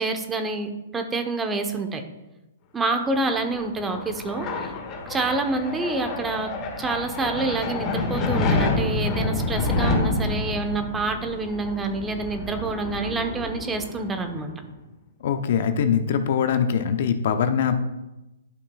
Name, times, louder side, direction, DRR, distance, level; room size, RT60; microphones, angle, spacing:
voice 1, 0.0-2.0 2.7-4.7 5.1-14.5, right 3 dB, 15° right, 6 dB, 0.8 m, -27 dB
sound 1, 3.2-14.5, left 2 dB, 25° left, 1.6 m, -28 dB
voice 2, 15.2-17.8, left 7 dB, 55° left, 9 dB, 0.7 m, -22 dB
12.0 x 5.6 x 2.3 m, 0.98 s
hypercardioid pair, 130°, 0 cm